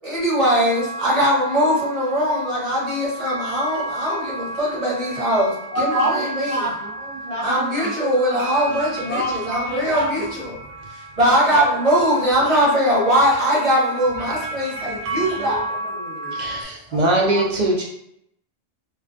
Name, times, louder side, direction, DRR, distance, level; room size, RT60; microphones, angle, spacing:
voice 1, 0.0-6.6 7.4-10.3 11.2-15.8 16.4-16.5, equal, 35° right, -7 dB, 0.9 m, -21 dB
sound 1, 0.6-16.6, right 2 dB, 80° right, 0.9 m, -33 dB
voice 2, 5.7-7.9 8.3-8.5 9.0-10.6 11.3-11.6 14.3-15.6 15.9-16.4 16.9-17.4, right 1 dB, 40° left, -6 dB, 0.7 m, -28 dB
voice 3, 16.9-17.8, right 1 dB, 60° right, -1 dB, 0.4 m, -20 dB
2.4 x 2.1 x 2.5 m, 0.76 s
omnidirectional pair, 1.2 m